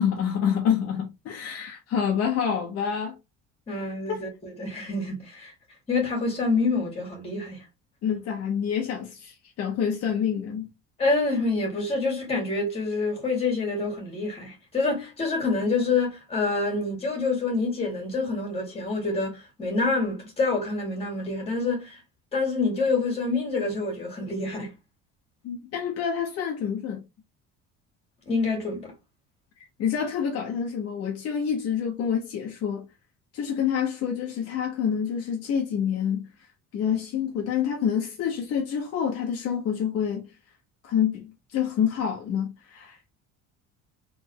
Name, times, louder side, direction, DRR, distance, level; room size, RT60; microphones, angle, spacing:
voice 1, 0.0-3.1 4.1-4.3 8.0-10.7 25.4-27.0 29.8-32.9 33.3-36.3 36.7-40.3 40.8-43.0, left 8 dB, 55° left, 1.4 m, -27 dB
voice 2, 3.7-5.5 5.9-7.7 11.0-22.0 22.3-24.7 28.3-28.9, left 3 dB, 20° left, 2.3 m, -27 dB
4.0 x 3.9 x 3.1 m
cardioid pair, 165°, 30 cm